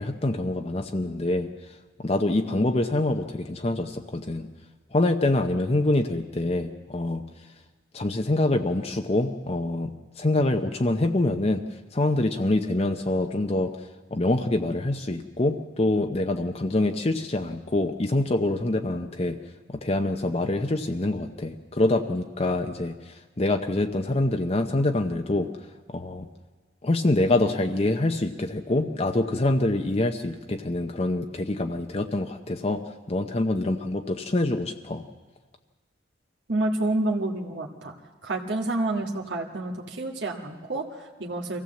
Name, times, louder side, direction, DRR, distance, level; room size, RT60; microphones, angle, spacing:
voice 1, 0.0-1.5 2.0-4.5 4.9-7.2 7.9-9.9 10.2-11.6 11.9-19.4 19.7-25.5 25.9-26.3 26.8-32.8 33.1-35.0, left 2 dB, 35° left, 5 dB, 0.8 m, -25 dB
voice 2, 36.5-37.9 38.2-41.6, right 2 dB, 75° right, 0 dB, 1.7 m, -29 dB
24.0 x 16.0 x 7.7 m, 1.3 s
head